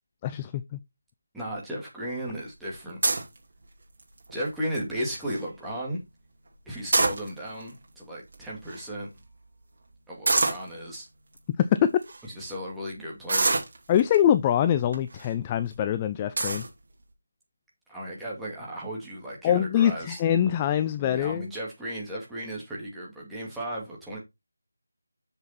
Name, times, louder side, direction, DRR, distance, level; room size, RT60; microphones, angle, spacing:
voice 1, 0.2-0.8 11.6-11.9 13.9-16.6 19.4-21.5, left 10 dB, 20° left, 0.4 m, -24 dB
voice 2, 1.3-3.0 4.3-6.0 6.7-9.1 10.1-11.1 12.4-13.6 17.9-20.2 21.0-24.2, right 1 dB, 5° right, 2.3 m, -35 dB
sound 1, 3.0-3.4 4.0-4.3 4.7-4.8 5.0-5.4 6.7-7.6 8.3-8.4 8.6-8.8 10.2-10.7 11.4-11.5 12.0-12.2 13.3-14.1 14.9-15.3 15.7-15.8 16.4-16.7, right 3 dB, 50° right, 2.8 m, -25 dB
7.2 x 6.8 x 4.1 m
figure-of-eight pair, 165°, 0 cm